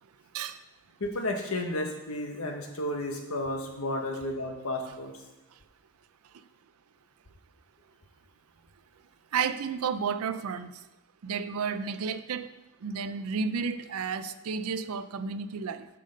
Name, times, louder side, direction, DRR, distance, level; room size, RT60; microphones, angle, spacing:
voice 1, 1.0-5.1, left 1 dB, 80° left, 1.3 m, -32 dB
voice 2, 9.3-10.8 11.2-12.5 12.8-15.9, right 6 dB, 90° right, 0.5 m, -32 dB
7.6 x 6.7 x 5.3 m
head